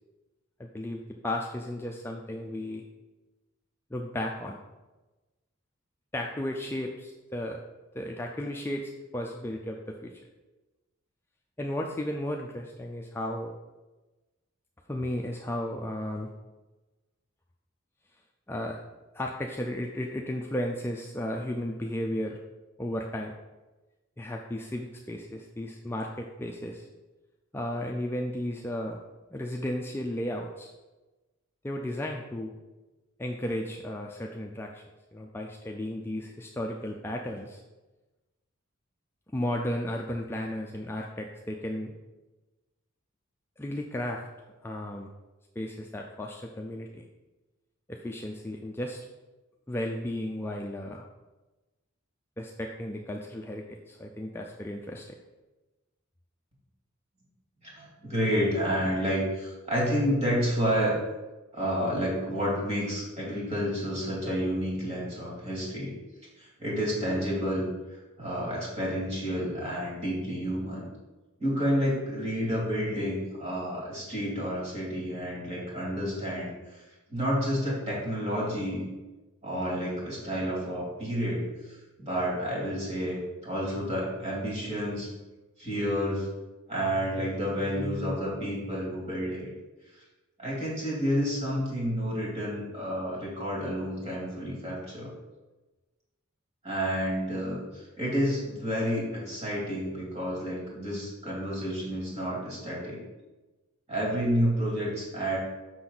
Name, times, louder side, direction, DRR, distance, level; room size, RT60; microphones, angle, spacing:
voice 1, 0.6-2.8 3.9-4.6 6.1-7.6 7.9-10.3 11.6-13.5 14.9-16.3 18.5-18.8 19.1-22.4 22.8-23.3 24.2-26.9 27.5-29.0 29.3-30.7 31.6-32.5 33.2-34.8 35.1-37.6 39.3-41.9 43.6-44.2 44.6-45.1 45.6-47.0 47.9-49.1 49.7-51.1 52.4-55.1, left 1 dB, 10° left, 0 dB, 0.4 m, -34 dB
voice 2, 57.6-61.0 61.5-65.9 66.4-70.9 71.4-76.8 77.1-78.9 79.4-85.1 85.6-86.3 86.7-89.5 89.9-90.0 90.4-95.1 96.6-103.0 103.9-105.4, equal, 30° right, -5 dB, 2.5 m, -30 dB
6.1 x 5.9 x 3.9 m, 1.1 s
head